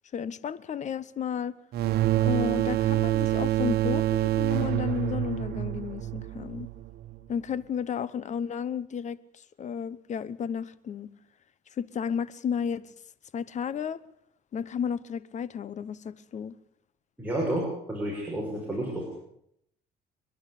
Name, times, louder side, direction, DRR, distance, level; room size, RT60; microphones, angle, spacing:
voice 1, 0.1-1.5 2.2-6.7 7.3-11.1 11.8-12.9 13.3-14.0 14.5-16.5, left 7 dB, 45° left, 1.1 m, -33 dB
sound 1, 1.7-7.2, right 14 dB, 70° right, 1.5 m, -27 dB
voice 2, 17.2-19.1, right 1 dB, 10° right, 6.7 m, -30 dB
28.5 x 11.5 x 8.5 m
cardioid pair, 110°, 17 cm